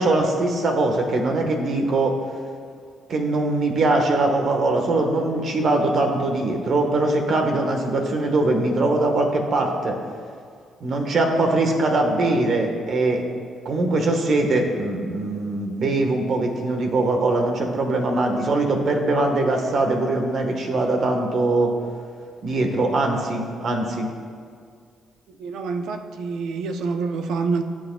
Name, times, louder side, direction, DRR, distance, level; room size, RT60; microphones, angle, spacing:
voice 1, 0.0-2.2 3.1-10.0 10.8-13.2 13.6-21.7 22.4-24.1, right 2 dB, 60° right, 3 dB, 1.4 m, -22 dB
voice 2, 25.4-27.6, right 4 dB, 80° right, 6 dB, 0.7 m, -26 dB
17.5 x 7.6 x 2.3 m, 2.1 s
cardioid pair, 90°, 0 cm